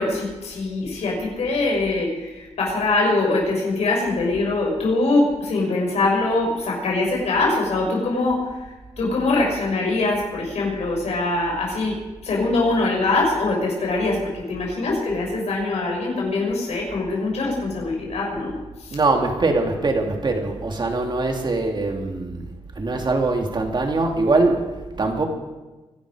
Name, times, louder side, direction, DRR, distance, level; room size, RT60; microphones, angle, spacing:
voice 1, 0.0-8.4 9.0-18.9, left 2 dB, 75° left, -1 dB, 6.4 m, -23 dB
voice 2, 18.9-25.3, right 3 dB, 45° right, 2 dB, 2.9 m, -22 dB
24.0 x 11.5 x 5.1 m, 1.2 s
cardioid pair, 90°, 11 cm